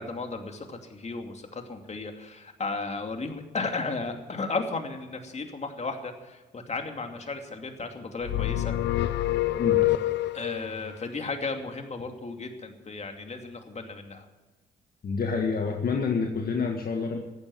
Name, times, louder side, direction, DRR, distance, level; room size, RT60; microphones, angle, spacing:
voice 1, 0.0-8.7 10.3-14.2, left 3 dB, 40° left, 5 dB, 2.7 m, -34 dB
sound 1, 8.2-10.7, left 15 dB, 80° left, 0.7 m, -26 dB
voice 2, 15.0-17.2, left 5 dB, 55° left, 2 dB, 1.8 m, -28 dB
14.5 x 9.5 x 9.4 m, 1.2 s
supercardioid pair, 60°, 18 cm